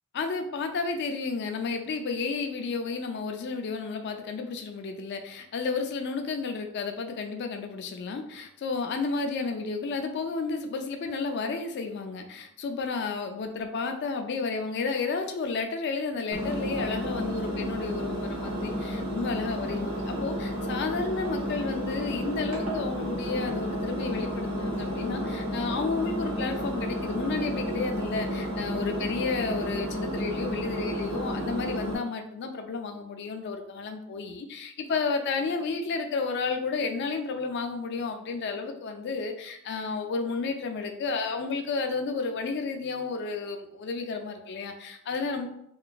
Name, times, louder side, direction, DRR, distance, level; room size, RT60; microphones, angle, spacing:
voice 1, 0.1-45.5, left 4 dB, 50° left, 5 dB, 0.3 m, -32 dB
Engine, 16.3-32.0, equal, 70° right, 0.7 m, -31 dB
2.9 x 2.5 x 2.2 m, 0.76 s
head